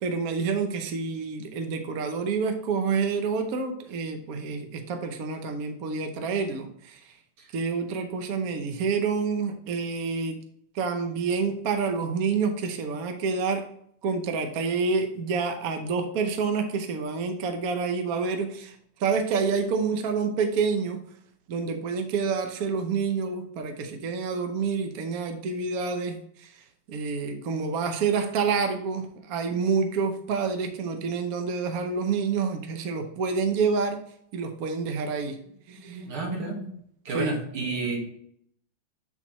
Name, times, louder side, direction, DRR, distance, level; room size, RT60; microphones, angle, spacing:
voice 1, 0.0-7.1 7.5-10.4 10.7-13.6 14.0-21.0 21.5-34.0 34.3-35.4 35.7-36.0 37.1-37.4, right 5 dB, 60° right, 6 dB, 1.0 m, -28 dB
voice 2, 35.8-36.7 37.1-38.0, right 3 dB, 85° right, 0 dB, 2.6 m, -31 dB
9.9 x 4.1 x 3.0 m, 0.69 s
omnidirectional pair, 2.3 m